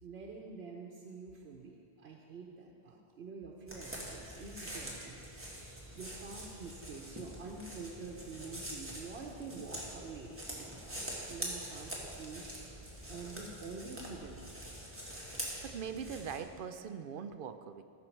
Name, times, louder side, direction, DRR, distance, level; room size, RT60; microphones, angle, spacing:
voice 1, 0.0-5.2 5.9-12.4 13.1-14.5, right 4 dB, 85° right, 0 dB, 1.1 m, -47 dB
sound 1, 3.7-16.4, right 1 dB, 10° right, 1.6 m, -45 dB
voice 2, 15.6-17.8, right 7 dB, 60° right, 9 dB, 0.7 m, -42 dB
14.5 x 6.1 x 4.5 m, 2.4 s
omnidirectional pair, 1.1 m